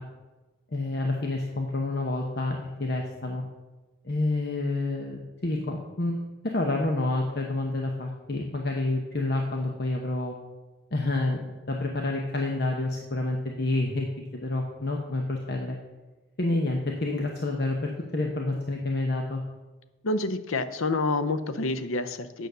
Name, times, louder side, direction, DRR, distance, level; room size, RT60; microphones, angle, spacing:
voice 1, 0.7-3.4 4.0-10.3 10.9-15.8 16.4-17.8 18.1-19.4, left 2 dB, 50° left, 1 dB, 1.0 m, -28 dB
voice 2, 20.0-22.5, left 2 dB, 85° left, 11 dB, 0.7 m, -28 dB
9.1 x 6.6 x 6.7 m, 1.2 s
head